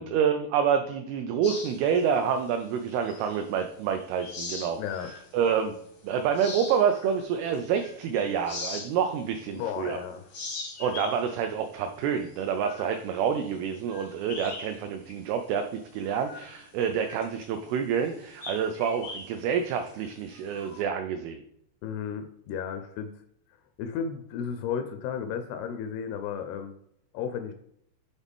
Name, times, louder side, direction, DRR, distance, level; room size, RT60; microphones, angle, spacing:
voice 1, 0.0-4.8 5.3-5.7 6.0-10.0 10.8-21.4, right 7 dB, 80° right, 6 dB, 2.3 m, -28 dB
sound 1, 1.4-3.6 4.0-5.3 5.7-5.9 6.3-9.9 10.2-14.8 15.1-15.2 15.7-20.8, left 3 dB, 65° left, 1.1 m, -42 dB
voice 2, 4.8-5.1 9.5-10.3 21.8-23.1 23.8-26.7 27.1-27.5, left 7 dB, 85° left, 7 dB, 2.5 m, -33 dB
7.2 x 4.1 x 3.5 m, 0.70 s
omnidirectional pair, 4.7 m